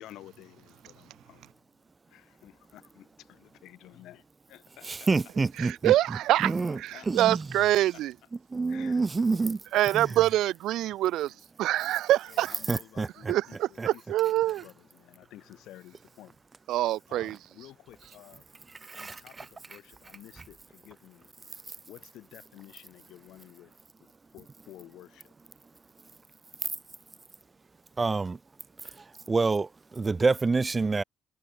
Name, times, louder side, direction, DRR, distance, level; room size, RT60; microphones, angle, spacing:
voice 1, 0.0-1.5 2.1-5.1 6.6-7.1 7.9-8.0 8.7-9.6 11.3-11.4 12.3-16.4 16.8-18.5 18.9-23.8 24.3-25.3, left 14 dB, 85° left, 7.5 m, -52 dB
voice 2, 4.9-5.9 6.4-6.8 7.1-7.5 8.5-9.6 9.9-10.1 12.7-13.3 13.8-13.9 18.9-19.5 28.0-28.4 29.3-31.0, right 4 dB, 30° right, 0.5 m, -27 dB
voice 3, 5.6-6.5 6.8-8.1 9.7-11.3 11.6-12.5 13.3-14.6 16.7-17.4, right 14 dB, 85° right, 0.6 m, -25 dB
cardioid pair, 90°, 0 cm